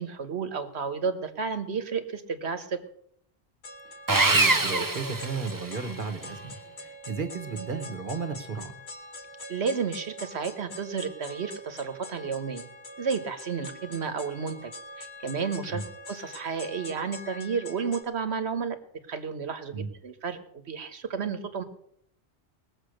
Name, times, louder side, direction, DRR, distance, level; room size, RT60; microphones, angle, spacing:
voice 1, 0.0-2.8 9.5-12.6 13.0-14.7 15.0-15.8 16.1-18.8 19.1-20.4 20.7-21.6, right 5 dB, 75° right, 10 dB, 1.5 m, -32 dB
sound 1, 3.6-18.0, left 1 dB, 75° left, 1.8 m, -44 dB
Sawing, 4.1-6.0, right 3 dB, 20° right, 0.7 m, -24 dB
voice 2, 4.3-8.8 15.7-15.8 19.7-19.9, right 5 dB, 50° right, 9 dB, 1.5 m, -34 dB
19.5 x 7.4 x 6.5 m, 0.71 s
omnidirectional pair, 1.1 m